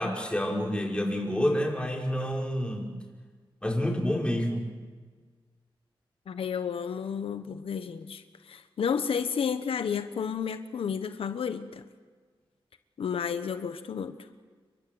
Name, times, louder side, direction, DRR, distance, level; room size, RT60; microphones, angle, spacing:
voice 1, 0.0-2.9 3.6-4.6, equal, 10° left, 0 dB, 5.7 m, -28 dB
voice 2, 6.3-11.8 13.0-14.2, left 7 dB, 85° left, 10 dB, 1.2 m, -31 dB
29.5 x 23.5 x 8.0 m, 1.5 s
wide cardioid pair, 90°, 9 cm